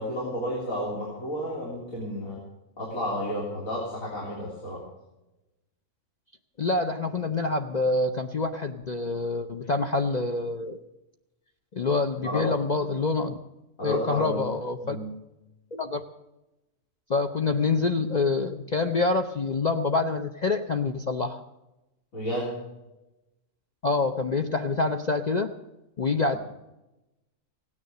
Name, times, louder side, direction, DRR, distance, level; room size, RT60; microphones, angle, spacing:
voice 1, 0.0-2.4 2.8-4.8 12.2-12.5 13.8-14.5 14.8-15.2 22.1-22.6, left 1 dB, 85° left, -6 dB, 4.0 m, -31 dB
voice 2, 6.6-10.8 11.7-13.3 13.8-15.0 15.7-16.0 17.1-21.4 23.8-25.5 26.0-26.4, left 3 dB, 40° left, 5 dB, 0.6 m, -26 dB
16.5 x 9.9 x 6.6 m, 0.97 s
omnidirectional pair, 1.4 m